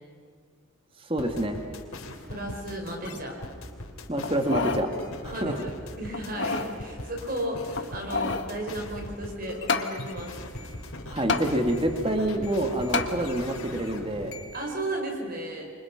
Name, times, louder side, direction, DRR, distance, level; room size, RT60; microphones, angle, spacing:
voice 1, 1.0-1.6 3.1-3.2 4.1-4.9 5.2-5.6 11.1-14.3, right 1 dB, 25° right, 5 dB, 1.8 m, -27 dB
sound 1, 1.2-14.7, left 1 dB, 90° left, 3.2 m, -40 dB
voice 2, 2.3-3.4 5.3-10.4 14.5-15.7, right 1 dB, 40° right, 1 dB, 4.9 m, -34 dB
sound 2, 4.2-4.9 5.3-5.4 6.1-6.7 7.7-8.5 9.7-9.9 11.3-11.5 12.9-13.1 13.7-13.8, left 4 dB, 55° left, 1.6 m, -28 dB
29.0 x 25.0 x 5.9 m, 2.1 s
head